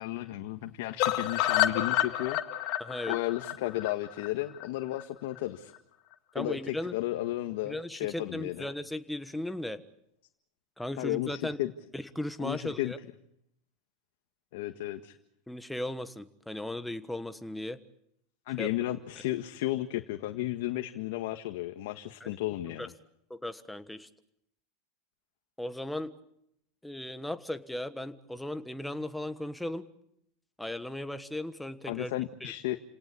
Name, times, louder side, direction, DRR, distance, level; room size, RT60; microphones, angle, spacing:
voice 1, 0.0-2.4 3.1-5.7 6.3-8.7 11.0-11.7 12.4-12.9 14.5-15.1 18.5-22.9 31.9-32.8, left 15 dB, 65° left, 6 dB, 1.7 m, -33 dB
sound 1, 1.0-5.0 5.4-5.5 5.7-5.8 6.1-6.2, left 13 dB, 40° left, 2.1 m, -29 dB
voice 2, 2.8-3.2 6.3-6.9 7.6-9.8 10.8-11.6 11.9-13.0 15.5-17.8 18.6-18.7 22.2-22.3 22.8-22.9 23.3-24.1 25.6-26.1 26.8-29.8 30.6-32.1 32.4-32.5, left 1 dB, 5° left, 10 dB, 1.3 m, -36 dB
30.0 x 18.5 x 8.5 m, 0.79 s
supercardioid pair, 160°, 0 cm